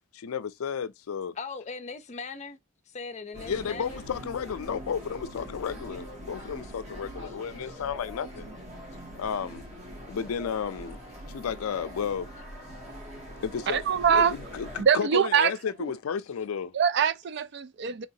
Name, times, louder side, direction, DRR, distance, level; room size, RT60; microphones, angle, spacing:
voice 1, 0.1-1.3 3.5-8.5 9.2-9.6 10.1-11.0 11.2-12.3 13.4-16.7, left 7 dB, 90° left, 0.4 m, -33 dB
voice 2, 1.4-2.6 2.9-4.0 7.3-7.4 7.6-7.7 8.9-9.2 10.0-10.1 12.9-13.2, left 4 dB, 35° left, 0.5 m, -40 dB
sound 1, 3.3-14.8, equal, 30° right, 2.0 m, -43 dB
voice 3, 13.7-14.3 14.8-15.5 16.7-18.1, right 7 dB, 55° right, 0.4 m, -23 dB
3.8 x 3.4 x 2.7 m
head